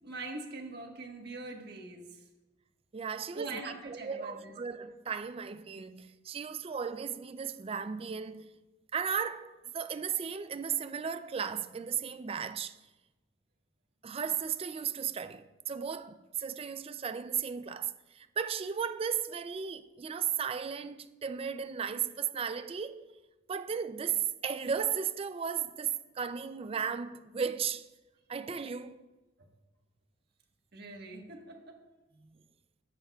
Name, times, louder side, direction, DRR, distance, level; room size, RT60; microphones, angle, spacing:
voice 1, 0.0-2.2 3.3-4.5 29.4-29.5 30.7-31.8, right 2 dB, 55° right, 1.4 m, -43 dB
voice 2, 2.9-8.5 8.9-12.8 14.0-23.1 23.5-27.9 28.3-29.0 32.2-32.3, right 7 dB, 30° right, 0.4 m, -35 dB
14.0 x 10.5 x 2.3 m
head